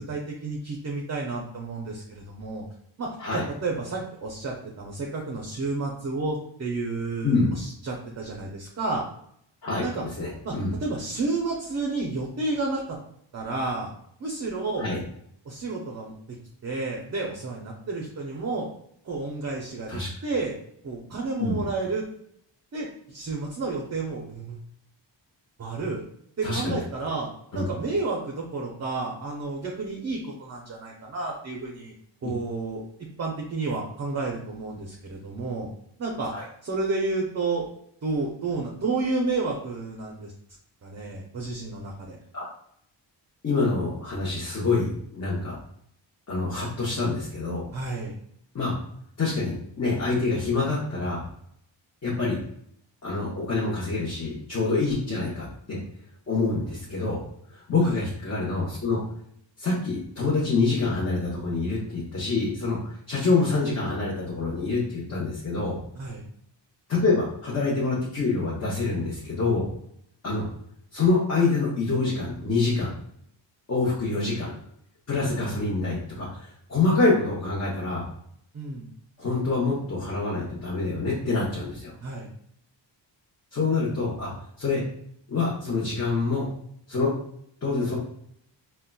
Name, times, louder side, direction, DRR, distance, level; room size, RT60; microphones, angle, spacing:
voice 1, 0.1-2.6 3.0-9.0 9.8-10.0 10.4-10.6 10.8-13.0 13.3-13.9 14.2-14.9 15.5-16.4 16.6-18.7 19.0-20.5 20.8-22.1 22.7-24.6 25.6-26.0 26.4-31.9 32.2-32.8 33.2-35.7 36.0-36.3 36.6-37.7 38.0-40.3 40.8-42.2 47.7-48.1 57.8-58.0 66.0-66.2 78.5-78.9 82.0-82.3, right 3 dB, 35° right, -1 dB, 0.5 m, -31 dB
voice 2, 10.2-10.7 14.8-15.0 19.9-20.1 21.4-21.6 26.4-26.8 27.5-27.6 36.2-36.4 42.3-42.5 43.4-45.5 46.3-47.6 48.5-48.7 49.2-51.3 52.0-52.4 53.0-55.8 56.3-57.2 57.5-59.0 59.6-65.8 66.9-69.7 70.2-70.5 70.9-72.9 73.7-74.5 75.1-78.1 79.2-81.9 83.5-84.3 84.6-84.8 85.3-86.5 86.9-87.1 87.6-88.0, left 3 dB, 35° left, -6 dB, 0.8 m, -26 dB
3.7 x 2.2 x 2.2 m, 0.69 s
cardioid pair, 90°, 46 cm